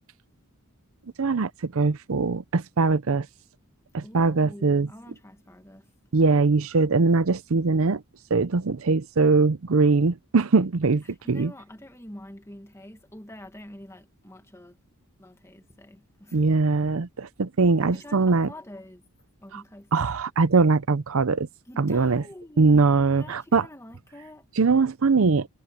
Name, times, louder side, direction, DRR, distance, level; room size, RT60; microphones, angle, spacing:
voice 1, 1.2-3.3 3.9-4.9 6.1-8.0 8.3-11.5 16.3-18.5 19.5-19.6 19.9-21.5 21.8-22.2 22.6-23.7 24.6-25.5, right 4 dB, 65° right, 0.6 m, -21 dB
voice 2, 4.0-5.9 11.0-14.8 15.2-16.5 17.8-19.0 19.4-19.9 21.7-22.9 23.2-24.5, left 1 dB, 10° left, 1.9 m, -46 dB
head